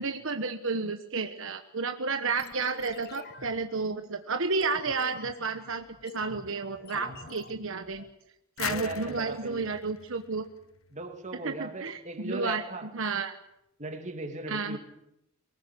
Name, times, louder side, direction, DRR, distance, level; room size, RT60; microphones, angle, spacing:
voice 1, 0.0-8.0 8.6-10.5 11.4-13.4 14.5-14.8, right 4 dB, 65° right, 7 dB, 1.2 m, -32 dB
sound 1, 2.4-8.1, left 3 dB, 50° left, 1.3 m, -48 dB
voice 2, 6.9-7.3 8.6-9.6 10.9-12.9 13.8-14.8, right 2 dB, 35° right, 4 dB, 2.7 m, -38 dB
sound 2, 8.6-11.3, left 9 dB, 70° left, 0.8 m, -39 dB
23.5 x 19.0 x 8.3 m, 0.82 s
head